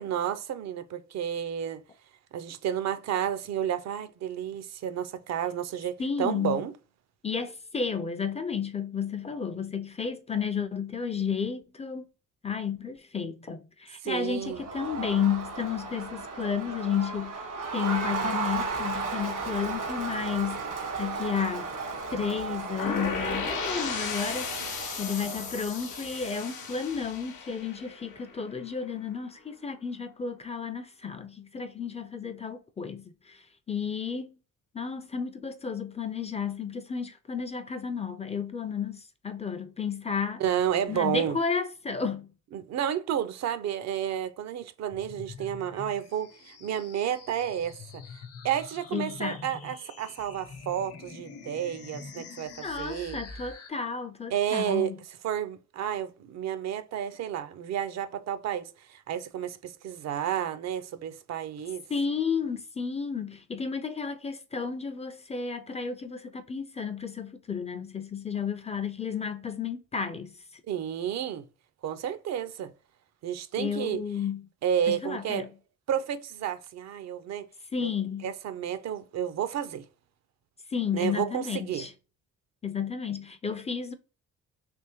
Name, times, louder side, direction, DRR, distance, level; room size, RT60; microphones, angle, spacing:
voice 1, 0.0-1.8 2.3-6.7 14.0-14.6 40.4-41.4 42.5-48.0 48.4-53.2 54.3-54.9 55.2-61.8 70.7-71.4 71.8-72.7 73.2-74.0 74.6-75.5 75.9-77.5 77.8-77.9 78.2-79.8 80.9-81.9, right 9 dB, 60° right, 0.5 m, -31 dB
voice 2, 6.0-6.6 7.2-12.0 12.4-17.4 17.7-20.6 21.0-21.7 22.1-24.5 25.0-34.4 34.7-40.4 40.9-42.3 48.9-49.4 52.6-55.0 61.9-70.3 73.6-74.5 74.9-75.5 77.7-78.3 80.7-81.9 82.6-83.9, left 6 dB, 20° left, 0.4 m, -32 dB
Crowd, 14.4-27.0, right 4 dB, 80° right, 1.5 m, -35 dB
sound 1, 22.8-28.7, left 6 dB, 85° left, 0.8 m, -35 dB
sound 2, 44.9-53.7, left 5 dB, 55° left, 0.7 m, -46 dB
3.4 x 3.0 x 3.0 m
cardioid pair, 90°, 30 cm